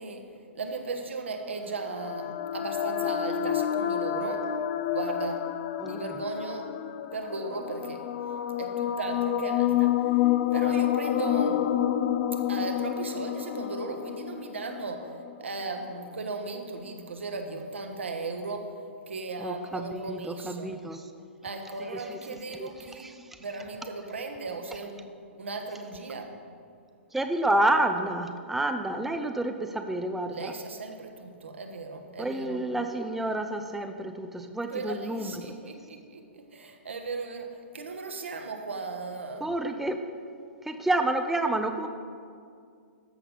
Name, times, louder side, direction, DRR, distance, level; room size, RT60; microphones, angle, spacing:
voice 1, 0.0-4.5 4.9-5.5 5.8-6.7 7.1-8.0 8.6-11.7 12.3-15.1 15.4-20.8 21.4-23.1 23.4-26.4 30.3-32.6 34.7-39.5, right 3 dB, 75° right, 4 dB, 1.2 m, -37 dB
sound 1, 1.7-15.3, left 11 dB, 45° left, 0.5 m, -29 dB
voice 2, 19.4-21.0 22.6-22.7 23.0-23.1 27.1-30.5 32.2-35.3 39.4-40.0 40.7-41.9, right 1 dB, 5° right, 6 dB, 0.4 m, -29 dB
13.5 x 6.7 x 4.2 m, 2.2 s
figure-of-eight pair, 115°, 7 cm